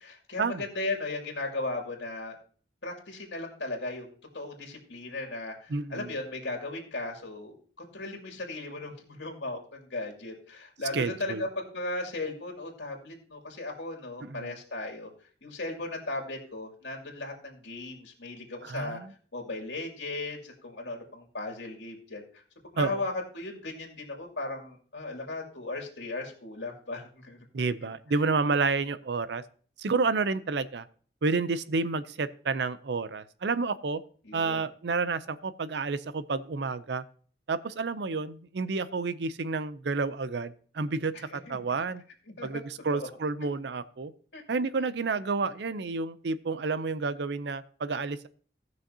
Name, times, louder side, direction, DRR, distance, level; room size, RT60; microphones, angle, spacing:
voice 1, 0.0-2.4 2.8-15.1 15.4-19.0 19.3-22.2 22.6-27.4 34.2-34.6 41.1-41.6 42.4-42.6 42.9-43.1 43.4-43.5 44.3-44.4, left 2 dB, 80° left, 1 dB, 2.5 m, -37 dB
voice 2, 5.7-6.1 10.9-11.4 14.2-14.6 18.6-19.1 22.8-23.0 27.5-29.4 29.8-30.9 31.2-34.0 34.3-37.0 37.5-42.0 42.4-44.1 44.5-48.3, right 4 dB, 70° right, 15 dB, 0.5 m, -30 dB
18.0 x 6.3 x 2.8 m, 0.43 s
head